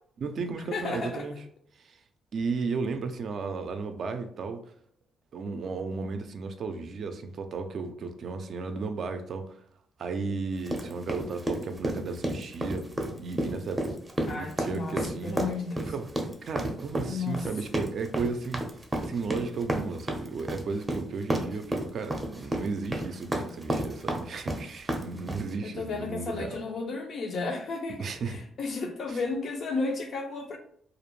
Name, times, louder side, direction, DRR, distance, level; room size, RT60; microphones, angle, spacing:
voice 1, 0.2-1.4 1.8-2.0 2.3-4.6 5.3-9.6 10.0-14.0 14.3-15.4 15.8-16.1 16.4-18.6 19.0-26.6 28.0-28.4 29.1-29.2, right 4 dB, 60° right, 7 dB, 0.4 m, -34 dB
voice 2, 0.7-1.3 14.3-15.8 17.0-17.5 25.6-30.6, left 4 dB, 60° left, 3 dB, 0.6 m, -33 dB
sound 1, 10.7-25.5, right 1 dB, 15° right, 0.6 m, -31 dB
2.5 x 2.1 x 3.0 m, 0.64 s
cardioid pair, 90°, 0 cm